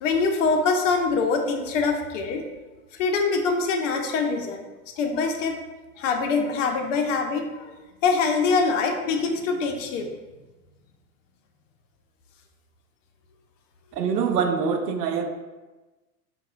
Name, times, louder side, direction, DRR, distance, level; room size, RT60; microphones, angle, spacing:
voice 1, 0.0-2.4 2.9-4.6 5.0-5.5 6.0-7.7 8.0-10.1, left 4 dB, 50° left, 4 dB, 0.6 m, -24 dB
voice 2, 13.9-15.3, right 6 dB, 75° right, 6 dB, 0.6 m, -24 dB
5.3 x 2.3 x 2.5 m, 1.2 s
figure-of-eight pair, 90°, 49 cm